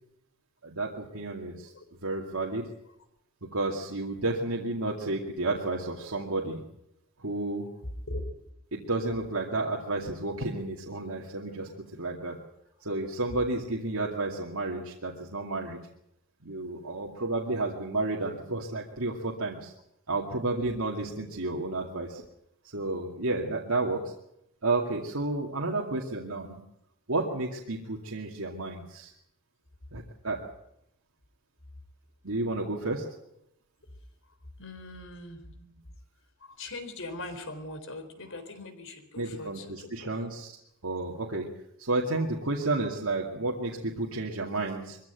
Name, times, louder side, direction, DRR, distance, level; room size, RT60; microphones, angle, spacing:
voice 1, 0.6-1.7 2.0-2.7 3.4-6.6 7.2-7.7 8.7-12.4 12.8-15.8 16.4-19.7 20.1-22.2 22.6-24.1 24.6-26.6 27.1-29.1 29.9-30.4 32.2-33.1 35.5-35.6 39.2-40.6 40.8-41.5 41.8-45.0, right 2 dB, 75° right, -1 dB, 2.4 m, -31 dB
voice 2, 34.6-35.4 36.4-40.1 41.1-41.2, left 2 dB, 65° left, 8 dB, 4.1 m, -41 dB
23.5 x 15.5 x 9.2 m, 0.80 s
head